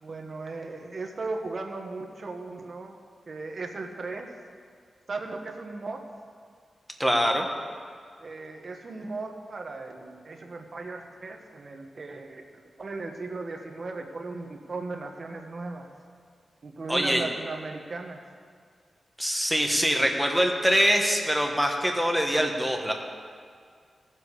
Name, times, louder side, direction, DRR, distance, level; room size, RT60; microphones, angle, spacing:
voice 1, 0.0-3.0 3.3-4.3 5.1-6.0 8.2-12.4 12.8-15.9 16.6-18.2, right 3 dB, 50° right, 3 dB, 1.4 m, -37 dB
voice 2, 7.0-7.5 16.9-17.2 19.2-22.9, equal, ahead, 2 dB, 1.4 m, -24 dB
18.5 x 7.5 x 4.9 m, 2.1 s
wide cardioid pair, 95°, 0 cm